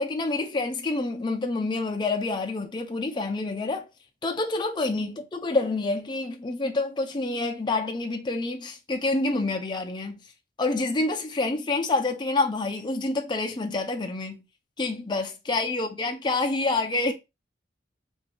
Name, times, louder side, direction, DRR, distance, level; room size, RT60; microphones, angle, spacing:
voice 1, 0.0-3.9 4.2-10.2 10.6-14.4 14.8-17.1, left 2 dB, 25° left, 0.5 m, -27 dB
2.7 x 2.7 x 4.2 m
head